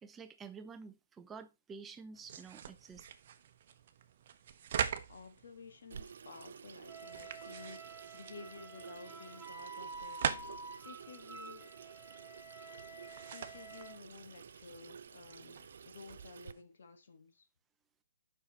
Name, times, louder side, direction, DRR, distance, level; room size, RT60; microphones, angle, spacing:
voice 1, 0.0-3.1, right 5 dB, 10° right, 0.6 m, -50 dB
sound 1, 2.1-16.6, right 8 dB, 50° right, 0.9 m, -44 dB
voice 2, 5.1-10.5 10.8-11.7 13.3-17.5, left 4 dB, 70° left, 1.6 m, -53 dB
Water tap faucet / Sink (filling or washing), 5.9-16.5, right 6 dB, 70° right, 0.5 m, -52 dB
Wind instrument woodwind instrument, 6.9-14.0, right 3 dB, 10° left, 2.2 m, -50 dB
6.9 x 5.7 x 4.1 m
hypercardioid pair, 155°, 0 cm